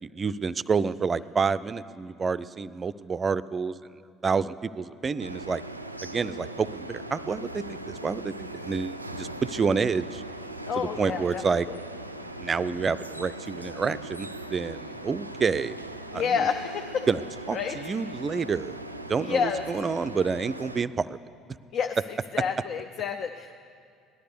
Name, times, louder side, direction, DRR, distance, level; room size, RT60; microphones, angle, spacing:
voice 1, 0.0-3.7 4.2-5.6 6.0-10.2 10.8-11.7 12.4-15.9 16.1-16.4 17.1-17.2 17.5-18.8 19.1-21.2, right 5 dB, 30° right, 16 dB, 0.4 m, -28 dB
sound 1, 5.2-20.8, right 1 dB, 90° right, 0.4 m, -40 dB
voice 2, 10.7-11.4 16.1-17.1 17.5-17.8 19.2-19.6 21.7-22.0 22.3-23.6, left 6 dB, 50° left, 6 dB, 0.6 m, -29 dB
18.0 x 12.0 x 6.8 m, 2.3 s
figure-of-eight pair, 60°, 0 cm